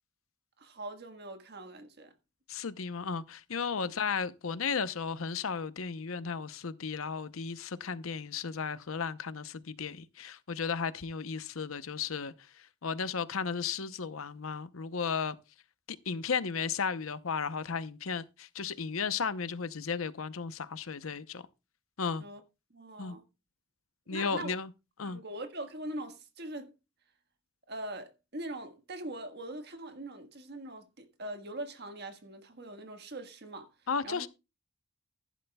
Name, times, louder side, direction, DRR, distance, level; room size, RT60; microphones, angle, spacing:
voice 1, 0.6-2.1 22.2-22.4 22.7-23.2 24.1-24.5 25.0-26.7 27.7-33.7 34.0-34.3, right 1 dB, 50° right, 1.5 m, -42 dB
voice 2, 2.5-15.4 15.9-21.4 22.0-22.3 23.0-23.2 24.1-24.7 25.0-25.2 33.9-34.3, left 5 dB, 85° left, 0.8 m, -34 dB
14.5 x 11.0 x 2.3 m
head